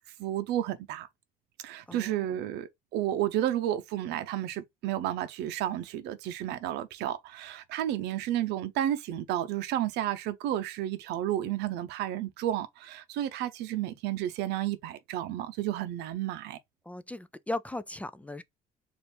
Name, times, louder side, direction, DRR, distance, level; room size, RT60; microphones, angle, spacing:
voice 1, 0.2-1.1 1.6-16.6, right 12 dB, 85° right, 0.6 m, -32 dB
voice 2, 1.9-2.4 16.9-18.4, left 2 dB, 10° left, 0.3 m, -37 dB
4.2 x 2.5 x 3.3 m
cardioid pair, 110°, 17 cm